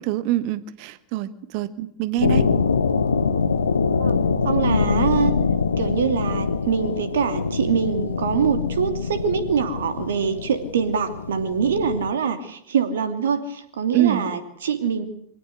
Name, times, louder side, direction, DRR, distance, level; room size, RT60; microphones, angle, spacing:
voice 1, 0.0-2.5 13.9-14.2, right 14 dB, 45° right, 15 dB, 1.3 m, -25 dB
sound 1, 2.2-12.1, left 5 dB, 75° left, 1.2 m, -24 dB
voice 2, 4.4-5.3 5.8-15.0, right 6 dB, 60° right, 8 dB, 2.8 m, -24 dB
24.5 x 17.0 x 8.1 m, 0.69 s
figure-of-eight pair, 90°, 0 cm